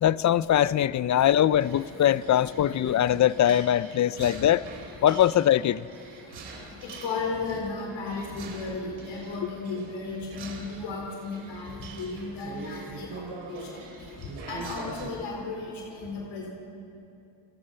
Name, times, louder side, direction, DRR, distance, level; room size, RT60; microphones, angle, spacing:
voice 1, 0.0-4.6 5.0-5.8, left 11 dB, 40° left, 18 dB, 0.5 m, -22 dB
sound 1, 1.3-15.1, right 4 dB, 65° right, 4.5 m, -44 dB
voice 2, 2.0-2.4 2.8-3.1 6.8-13.2 13.5-13.9 14.5-16.5, left 3 dB, 80° left, -1 dB, 4.2 m, -35 dB
30.0 x 18.5 x 5.6 m, 2.6 s
cardioid pair, 110°, 47 cm